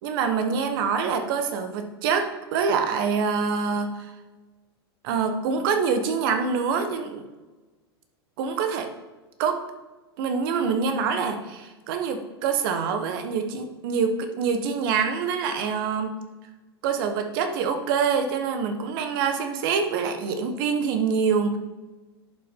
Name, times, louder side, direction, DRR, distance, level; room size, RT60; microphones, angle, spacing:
voice 1, 0.0-4.1 5.0-7.3 8.4-8.9 9.4-9.6 10.2-16.2 16.8-21.6, right 6 dB, 60° right, 7 dB, 1.3 m, -25 dB
11.0 x 5.7 x 3.7 m, 1.2 s
hypercardioid pair, 100°, 13 cm